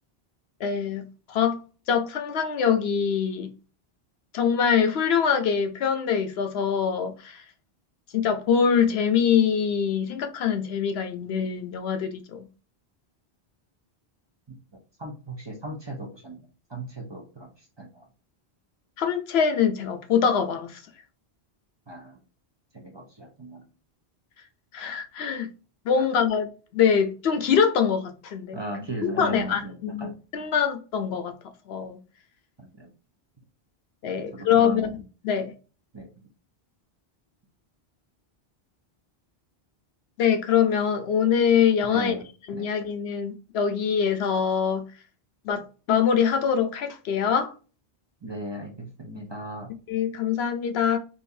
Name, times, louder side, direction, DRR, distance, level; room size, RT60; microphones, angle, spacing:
voice 1, 0.6-1.6 1.9-3.5 4.3-7.4 8.1-12.5 19.0-20.8 24.7-25.5 25.9-28.6 29.0-31.3 31.7-32.0 34.0-34.9 35.2-35.5 40.2-42.1 42.5-44.8 45.4-47.5 49.9-51.0, left 7 dB, 80° left, 0.9 m, -24 dB
voice 2, 15.0-16.4 16.7-18.1 21.9-22.2 22.7-23.6 25.9-26.1 28.5-30.2 32.6-32.9 34.3-34.9 35.9-36.1 41.8-42.3 42.5-42.7 48.2-49.7, right 1 dB, 30° right, 0.7 m, -37 dB
3.6 x 2.6 x 2.6 m
omnidirectional pair, 1.1 m